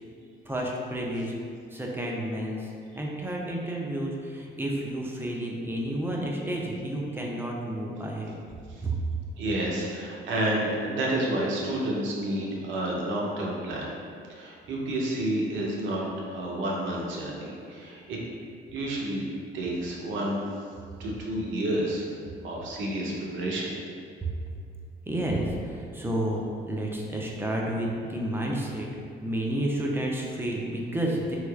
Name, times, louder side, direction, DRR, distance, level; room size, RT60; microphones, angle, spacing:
voice 1, 0.5-1.3 1.7-2.6 2.9-8.3 8.8-9.0 25.1-26.4 26.7-28.9 29.2-31.4, right 1 dB, 10° right, -2 dB, 0.5 m, -30 dB
voice 2, 9.4-13.9 14.3-18.2 18.7-19.2 19.5-20.6 21.0-22.0 22.4-23.7, right 1 dB, 75° right, -3 dB, 0.7 m, -30 dB
3.2 x 3.1 x 2.3 m, 2.3 s
cardioid pair, 90°, 20 cm